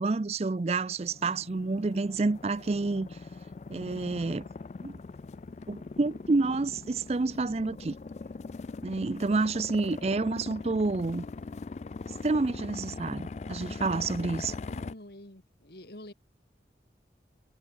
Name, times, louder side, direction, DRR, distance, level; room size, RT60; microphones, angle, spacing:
voice 1, 0.0-3.2 3.7-4.5 4.8-5.0 5.7-7.9 8.8-11.2 12.2-14.6, right 3 dB, 35° right, 0.4 m, -29 dB
sound 1, 1.0-14.9, left 4 dB, 40° left, 0.3 m, -41 dB
voice 2, 14.7-16.1, left 1 dB, 60° left, 4.4 m, -47 dB
head